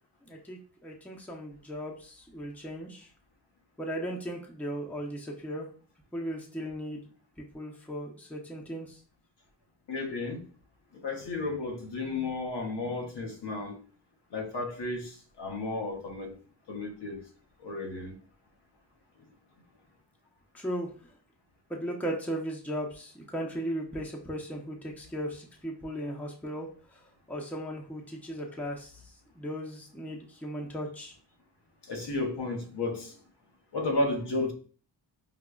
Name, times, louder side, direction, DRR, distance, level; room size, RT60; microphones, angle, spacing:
voice 1, 0.3-3.1 3.8-5.7 6.1-7.1 7.4-8.9 20.5-20.9 21.7-27.0 27.3-29.0 29.4-31.1, equal, 5° left, 0.7 m, -37 dB
voice 2, 9.9-10.4 11.0-13.8 14.3-16.3 16.7-17.2 17.6-18.2 31.9-33.1 33.7-34.5, left 2 dB, 70° left, 0.8 m, -33 dB
5.0 x 2.1 x 2.3 m
cardioid pair, 45°, 43 cm